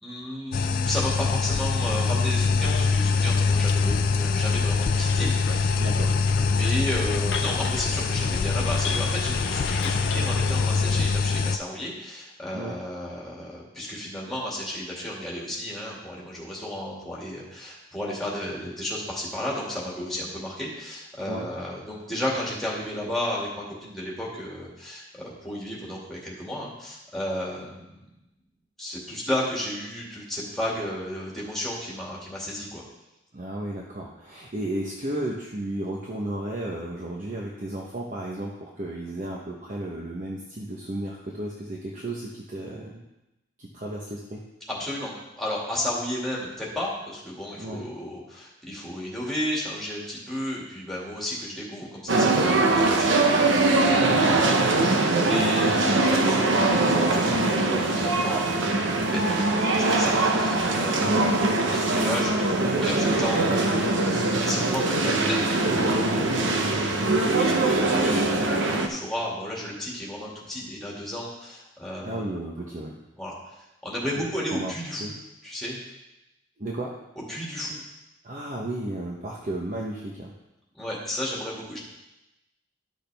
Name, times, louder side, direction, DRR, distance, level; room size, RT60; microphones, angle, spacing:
voice 1, 0.0-5.8 6.4-23.5 23.8-28.1 28.8-32.8 44.7-66.5 67.2-72.3 73.2-73.6 73.8-75.1 75.4-75.8 77.3-77.8 80.7-81.8, left 1 dB, ahead, -5 dB, 2.2 m, -33 dB
sound 1, 0.5-11.6, left 4 dB, 50° left, 0.3 m, -24 dB
Bus, 2.6-11.1, left 3 dB, 65° left, 0.8 m, -34 dB
voice 2, 5.8-6.1 12.5-12.8 21.2-21.5 33.3-43.0 43.6-44.4 47.6-47.9 54.1-54.7 61.0-61.2 66.5-66.8 72.0-72.9 74.5-74.7 75.0-75.1 76.6-77.0 78.2-80.3, right 1 dB, 45° right, -2 dB, 0.9 m, -33 dB
sound 2, 52.1-68.9, right 2 dB, 85° right, 0.8 m, -22 dB
12.0 x 6.4 x 3.4 m, 0.95 s
head